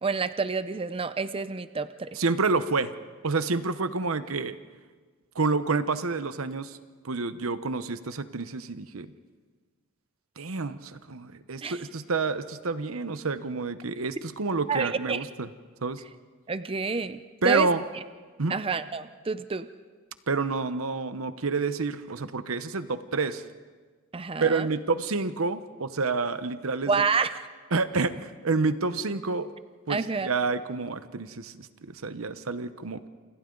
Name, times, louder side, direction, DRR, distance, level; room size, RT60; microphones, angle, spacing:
voice 1, 0.0-2.2 11.6-11.8 14.7-15.2 16.5-17.2 17.4-17.7 18.5-19.7 24.1-24.7 26.9-27.3 29.9-30.3, right 4 dB, 25° right, 12 dB, 0.6 m, -28 dB
voice 2, 2.1-2.9 3.2-4.6 5.3-6.8 7.0-9.1 10.4-15.5 15.8-16.0 17.4-17.8 18.4-18.5 20.3-23.4 24.4-27.0 27.7-29.5 29.9-33.1, right 4 dB, 90° right, 12 dB, 1.0 m, -28 dB
28.0 x 27.5 x 3.9 m, 1.5 s
head